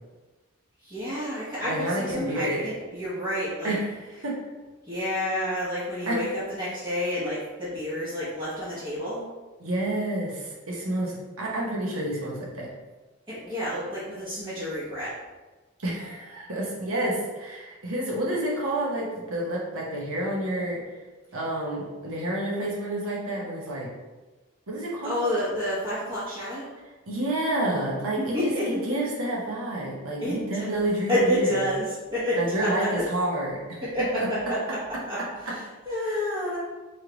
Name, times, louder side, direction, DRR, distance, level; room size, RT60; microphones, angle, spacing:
voice 1, 0.8-3.8 4.9-9.3 13.3-15.2 25.0-26.7 28.2-29.0 30.2-30.7 31.1-33.1 33.8-34.8 35.1-36.6, left 1 dB, 20° right, -11 dB, 0.8 m, -29 dB
voice 2, 1.6-2.7 3.6-3.9 4.2-4.3 6.1-6.2 9.6-12.7 15.8-20.8 21.3-23.9 24.7-25.3 27.1-31.7 32.4-33.8 34.2-34.3 36.0-36.2, right 1 dB, 80° right, -4 dB, 1.0 m, -29 dB
3.2 x 3.1 x 3.9 m, 1.2 s
head